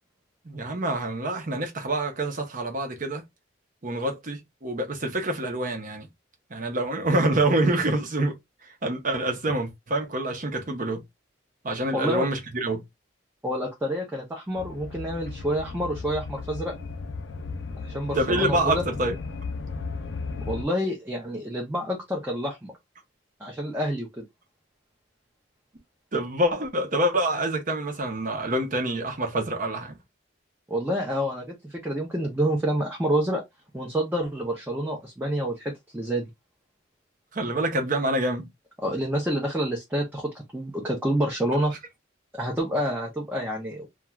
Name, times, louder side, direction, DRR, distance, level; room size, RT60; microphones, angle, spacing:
voice 1, 0.4-3.2 3.8-6.1 6.5-11.0 11.6-12.8 18.1-19.1 26.1-30.0 37.3-38.5, right 1 dB, 40° right, 0.7 m, -26 dB
voice 2, 11.9-12.3 13.4-16.7 17.8-18.8 20.5-22.7 23.4-24.2 30.7-33.4 33.7-36.2 38.8-41.8 42.3-43.9, equal, 10° right, 0.6 m, -28 dB
sound 1, 14.6-20.6, left 4 dB, 65° left, 0.4 m, -35 dB
2.4 x 2.4 x 3.0 m
head